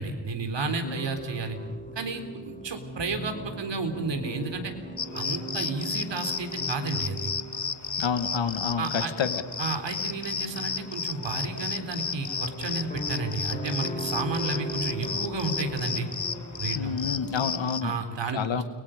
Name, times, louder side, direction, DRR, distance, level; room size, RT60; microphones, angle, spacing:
voice 1, 0.0-1.6 2.0-4.7 5.1-7.3 8.8-9.1 9.6-16.1 16.6-16.9 17.8-18.6, right 3 dB, 65° right, 7 dB, 3.9 m, -32 dB
sound 1, 0.8-17.6, right 1 dB, 15° left, 5.4 m, -40 dB
sound 2, 5.0-17.8, left 6 dB, 40° left, 1.5 m, -33 dB
voice 2, 8.0-9.4 16.7-17.9 18.3-18.6, left 6 dB, 75° left, 10 dB, 2.0 m, -29 dB
30.0 x 23.5 x 5.2 m, 1.3 s
cardioid pair, 85°, 46 cm